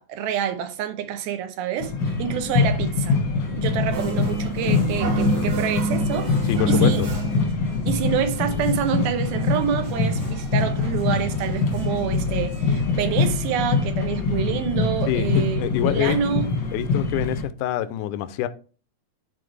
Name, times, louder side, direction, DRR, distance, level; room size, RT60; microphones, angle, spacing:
voice 1, 0.0-3.2 3.6-6.3 6.7-7.0 7.9-16.5, right 9 dB, 90° right, 2.7 m, -27 dB
sound 1, 1.8-17.4, left 4 dB, 60° left, 1.1 m, -24 dB
sound 2, 3.2-14.0, right 1 dB, 45° right, 1.0 m, -42 dB
sound 3, 3.9-7.5 7.9-8.0 8.2-9.0 9.4-9.5 9.7-10.5 11.0-11.1 11.4-12.1 12.5-12.6 12.8-12.9, right 3 dB, 60° right, 2.8 m, -28 dB
voice 2, 6.5-7.1 15.1-15.3 15.6-16.2 16.7-18.5, left 12 dB, 90° left, 1.8 m, -25 dB
10.5 x 4.0 x 3.2 m
omnidirectional pair, 4.2 m